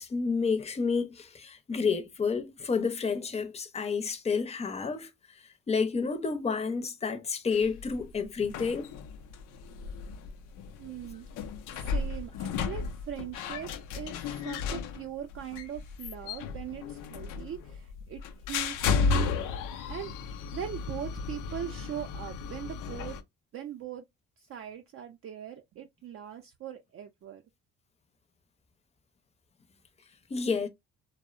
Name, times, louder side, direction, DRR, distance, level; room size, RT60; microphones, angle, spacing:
voice 1, 0.0-5.1 5.7-8.9 30.3-30.7, left 5 dB, 20° left, 0.5 m, -30 dB
sound 1, 7.5-23.2, left 5 dB, 90° left, 0.5 m, -34 dB
voice 2, 10.8-11.3 11.8-18.2 18.5-19.5 19.9-20.1 20.5-23.2 23.5-24.0 24.4-27.4, right 10 dB, 50° right, 0.4 m, -40 dB
2.7 x 2.0 x 2.4 m
cardioid pair, 90°, 30 cm